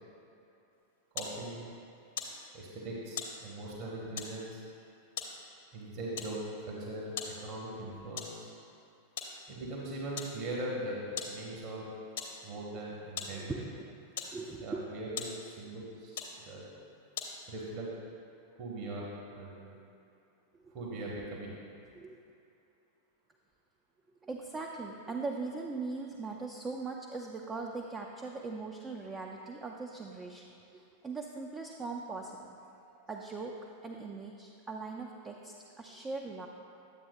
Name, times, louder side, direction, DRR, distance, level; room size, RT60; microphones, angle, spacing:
sound 1, 0.7-17.7, left 6 dB, 55° left, 0.8 m, -45 dB
voice 1, 1.1-1.7 2.5-4.6 5.7-8.5 9.5-11.9 12.4-13.5 14.6-16.7 17.5-17.9 18.6-19.8 20.7-21.6, right 1 dB, 40° right, -4 dB, 1.2 m, -40 dB
voice 2, 13.3-13.9 14.3-14.8 19.7-19.8 20.5-20.7 21.9-22.2 24.2-32.6 33.1-33.6 33.8-36.5, right 3 dB, 15° right, 1 dB, 0.4 m, -40 dB
10.5 x 7.6 x 2.2 m, 2.6 s
figure-of-eight pair, 90°, 0 cm